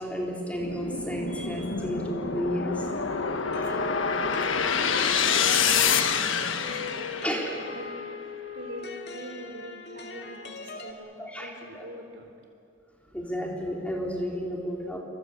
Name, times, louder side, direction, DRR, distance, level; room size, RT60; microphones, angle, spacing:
voice 1, 0.0-2.9 7.2-7.5 11.2-11.5 11.7-11.8 13.1-15.0, equal, 5° left, -2 dB, 4.1 m, -32 dB
sound 1, 0.6-7.9, left 6 dB, 90° left, 1.5 m, -27 dB
sound 2, 3.5-10.9, left 4 dB, 60° left, 2.3 m, -39 dB
voice 2, 3.5-7.9 8.5-12.4, right 1 dB, 70° right, 2 dB, 3.9 m, -44 dB
29.0 x 23.5 x 8.1 m, 2.4 s
head